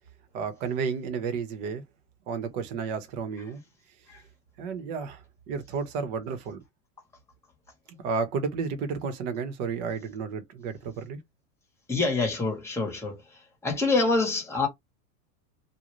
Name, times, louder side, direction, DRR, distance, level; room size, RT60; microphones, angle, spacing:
voice 1, 0.3-1.8 2.3-3.6 4.6-6.6 7.9-11.2, right 5 dB, 50° right, 1.1 m, -32 dB
voice 2, 11.9-13.2 13.6-14.7, left 3 dB, 5° left, 1.1 m, -25 dB
2.6 x 2.4 x 3.1 m
supercardioid pair, 140°, 45 cm